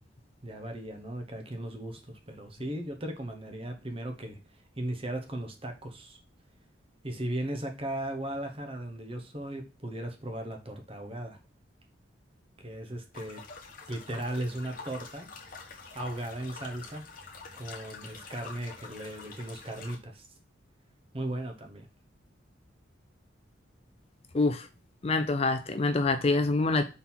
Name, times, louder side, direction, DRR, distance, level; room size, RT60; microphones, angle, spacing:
voice 1, 0.4-4.4 4.8-6.2 7.0-11.4 12.6-13.4 13.9-15.3 15.9-17.0 17.5-20.3 21.1-21.9, right 1 dB, 30° right, 5 dB, 0.9 m, -37 dB
sound 1, 13.1-20.0, left 4 dB, 45° left, 1.1 m, -46 dB
voice 2, 24.3-24.7 25.0-26.8, left 3 dB, 30° left, 9 dB, 0.4 m, -26 dB
4.4 x 4.0 x 5.4 m, 0.31 s
head